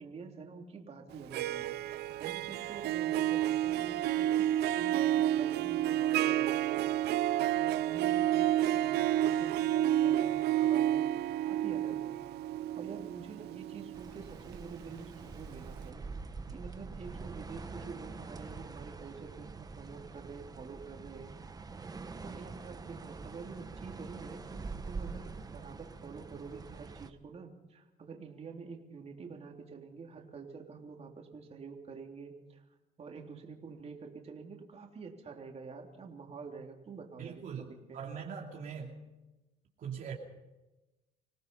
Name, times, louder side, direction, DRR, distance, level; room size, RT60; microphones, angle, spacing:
voice 1, 0.0-1.7 2.2-4.5 4.7-6.9 7.5-11.0 11.4-12.1 12.7-16.0 16.5-21.3 22.2-32.6 33.0-38.0, right 5 dB, 40° right, 1 dB, 3.5 m, -47 dB
Harp, 1.1-15.1, right 13 dB, 75° right, 0.6 m, -30 dB
sound 1, 13.9-27.1, right 4 dB, 20° right, 1.3 m, -45 dB
voice 2, 37.2-39.0 39.8-40.1, right 7 dB, 55° right, -1 dB, 2.8 m, -41 dB
27.0 x 17.5 x 5.5 m, 1.1 s
cardioid pair, 110°, 17 cm